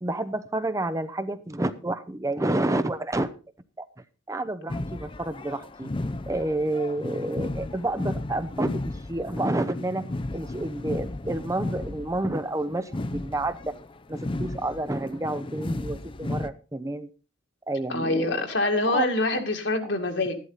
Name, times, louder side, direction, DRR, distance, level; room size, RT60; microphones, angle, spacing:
voice 1, 0.0-3.3 3.8-3.9 4.3-5.9 6.3-13.8 14.1-17.1 17.7-18.4 18.9-19.0, right 2 dB, 15° right, 11 dB, 0.6 m, -29 dB
sound 1, 4.7-16.5, left 2 dB, 25° left, 0.5 m, -34 dB
voice 2, 17.9-20.4, left 2 dB, 70° left, 4 dB, 2.2 m, -25 dB
13.0 x 11.5 x 4.0 m, 0.33 s
head